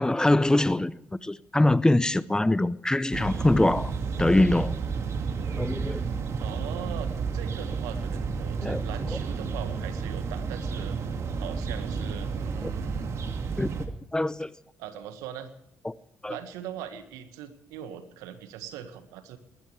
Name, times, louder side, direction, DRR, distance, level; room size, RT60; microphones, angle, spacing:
voice 1, 0.0-3.9 4.2-4.8 5.5-6.0 8.6-8.8 12.6-12.7 13.6-13.7 14.1-14.5 15.8-15.9 16.2-16.3, left 1 dB, 10° left, 0.8 m, -23 dB
sound 1, 3.1-13.9, right 5 dB, 55° right, 2.4 m, -31 dB
voice 2, 5.2-5.8 6.4-11.0 11.4-13.1 14.8-15.5 16.3-19.4, right 9 dB, 75° right, 1.7 m, -41 dB
20.0 x 19.5 x 3.4 m
hypercardioid pair, 50°, 6 cm